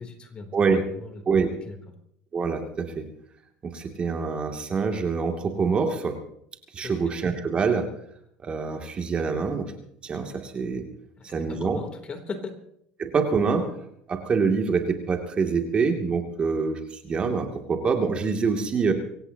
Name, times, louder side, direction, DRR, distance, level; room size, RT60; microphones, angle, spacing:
voice 1, 0.0-0.5 0.9-1.2 1.6-1.9 6.8-7.1 11.2-12.5, left 4 dB, 35° left, 5 dB, 3.4 m, -38 dB
voice 2, 0.5-0.8 1.3-1.5 2.3-3.0 3.6-6.2 6.7-7.9 8.4-9.7 10.0-10.9 11.2-11.8 13.0-13.7 14.1-18.9, right 5 dB, 35° right, 4 dB, 2.7 m, -25 dB
24.5 x 17.0 x 3.0 m, 0.70 s
hypercardioid pair, 85°, 3 cm